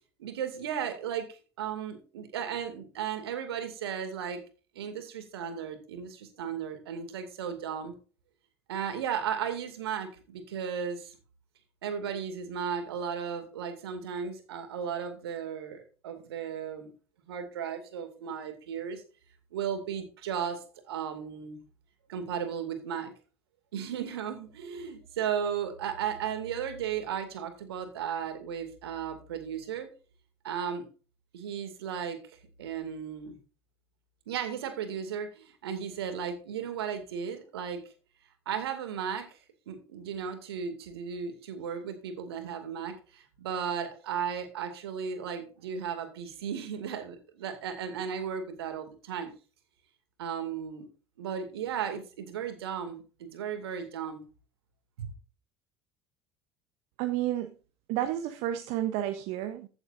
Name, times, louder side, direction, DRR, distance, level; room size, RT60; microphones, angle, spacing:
voice 1, 0.2-4.4 4.7-7.9 8.7-11.2 11.8-16.9 17.3-19.0 19.5-21.6 22.1-23.1 23.7-29.9 30.4-30.9 31.3-32.2 32.6-33.4 34.3-37.8 38.5-39.4 39.7-49.3 50.2-50.9 51.2-54.2 55.0-55.1, right 7 dB, 70° right, 7 dB, 2.4 m, -35 dB
voice 2, 57.0-57.5 57.9-59.7, right 12 dB, 55° right, 9 dB, 1.0 m, -31 dB
15.5 x 7.9 x 2.6 m, 0.36 s
figure-of-eight pair, 65°, 13 cm